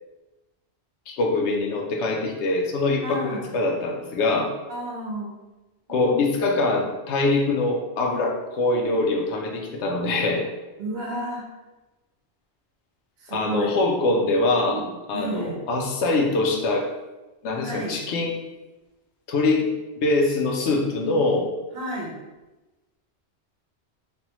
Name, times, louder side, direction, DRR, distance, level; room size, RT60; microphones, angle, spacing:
voice 1, 1.1-4.5 5.9-10.4 13.3-14.8 15.1-16.9 17.4-18.4 19.3-19.7 20.0-21.5, left 2 dB, 80° left, 1 dB, 0.9 m, -23 dB
voice 2, 3.0-3.5 4.7-5.4 5.9-6.3 10.8-11.5 13.2-13.8 14.7-15.7 17.5-18.0 21.7-22.2, right 1 dB, 65° right, -1 dB, 0.9 m, -32 dB
3.3 x 2.2 x 2.9 m, 1.1 s
omnidirectional pair, 1.1 m